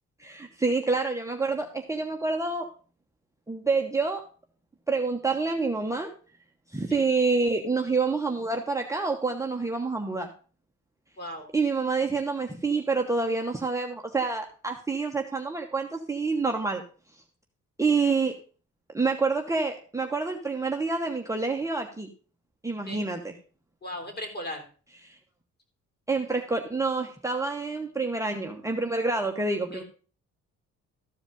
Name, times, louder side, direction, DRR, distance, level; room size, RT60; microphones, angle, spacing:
voice 1, 0.2-2.7 3.5-4.2 4.9-6.1 6.7-10.3 11.5-16.8 17.8-18.4 18.9-22.1 22.6-23.3 25.0-25.2 26.1-29.8, right 4 dB, 10° right, 2 dB, 1.0 m, -27 dB
voice 2, 11.2-11.5 22.9-23.1 23.8-24.6 29.7-29.8, left 1 dB, 35° left, 3 dB, 3.4 m, -37 dB
13.5 x 4.9 x 5.1 m, 0.39 s
cardioid pair, 90°, 30 cm